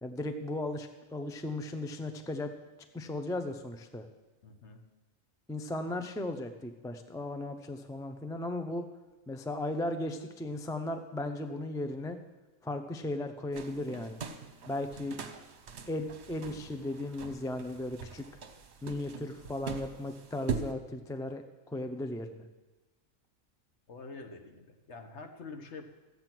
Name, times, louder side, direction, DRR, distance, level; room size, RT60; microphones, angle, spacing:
voice 1, 0.0-2.5 2.9-4.1 5.5-8.9 9.3-12.2 12.6-14.2 14.7-15.2 15.9-18.2 18.8-22.4, left 1 dB, 5° left, 7 dB, 0.4 m, -36 dB
voice 2, 4.4-4.8 23.9-25.8, left 3 dB, 55° left, 5 dB, 1.5 m, -46 dB
sound 1, 13.5-20.7, right 6 dB, 55° right, 1.1 m, -42 dB
13.5 x 8.7 x 6.1 m, 1.1 s
omnidirectional pair, 1.4 m